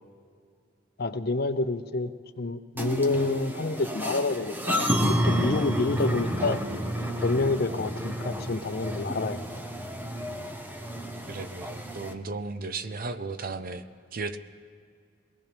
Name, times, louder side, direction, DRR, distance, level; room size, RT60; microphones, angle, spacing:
voice 1, 1.0-2.1 2.4-6.6 7.2-9.6, left 3 dB, 50° left, 11 dB, 0.7 m, -28 dB
sound 1, 2.8-12.1, equal, 10° right, 0.9 m, -30 dB
voice 2, 11.3-13.8 14.1-14.4, right 3 dB, 45° right, 11 dB, 0.6 m, -35 dB
22.5 x 18.5 x 3.5 m, 2.3 s
head